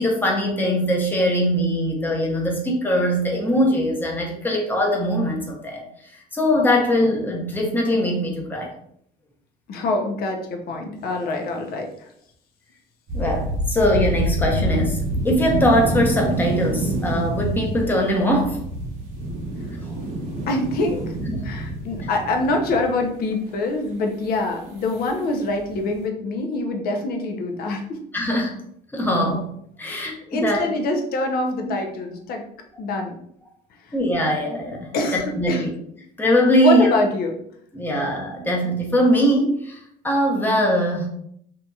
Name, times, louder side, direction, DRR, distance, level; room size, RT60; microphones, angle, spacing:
voice 1, 0.0-5.8 6.3-8.7 13.1-18.6 21.2-21.5 28.1-28.6 28.9-29.5 29.8-30.6 33.9-34.9 35.4-35.7 36.2-36.9 37.7-41.1, equal, 10° left, -1 dB, 0.7 m, -21 dB
voice 2, 9.7-12.1 20.5-21.0 21.4-28.0 29.9-32.4 32.8-33.1 33.8-34.0 34.9-35.6 36.6-37.4, left 2 dB, 65° left, 3 dB, 0.6 m, -25 dB
sound 1, 13.1-23.2 24.3-24.4 24.8-25.1 25.4-26.0, right 1 dB, 80° right, 0.8 m, -27 dB
2.8 x 2.8 x 2.3 m, 0.69 s
cardioid pair, 110°, 17 cm